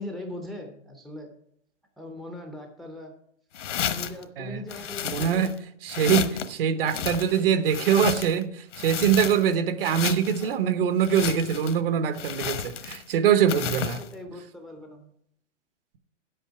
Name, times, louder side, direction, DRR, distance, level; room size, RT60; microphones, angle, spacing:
voice 1, 0.0-1.3 2.0-3.1 3.9-5.5 10.4-10.6 14.0-15.1, left 1 dB, ahead, 0.6 m, -40 dB
sound 1, 3.5-4.2 4.7-5.6 5.9-6.5 6.9-8.4 8.7-9.5 9.8-10.5 11.0-11.8 12.1-13.1 13.5-14.1, left 9 dB, 70° left, 1.1 m, -32 dB
voice 2, 5.0-5.5 5.8-14.0, right 8 dB, 50° right, 1.0 m, -23 dB
9.7 x 8.1 x 4.7 m
hypercardioid pair, 145°, 37 cm